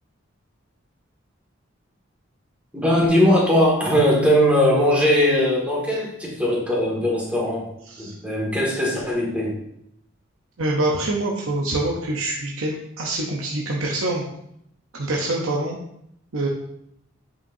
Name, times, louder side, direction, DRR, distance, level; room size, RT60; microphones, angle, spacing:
voice 1, 2.7-7.7 8.0-9.6, equal, 5° right, -4 dB, 2.0 m, -20 dB
voice 2, 10.6-14.2 14.9-15.8 16.3-16.5, right 2 dB, 85° right, -1 dB, 0.8 m, -25 dB
8.0 x 5.8 x 2.7 m, 0.76 s
head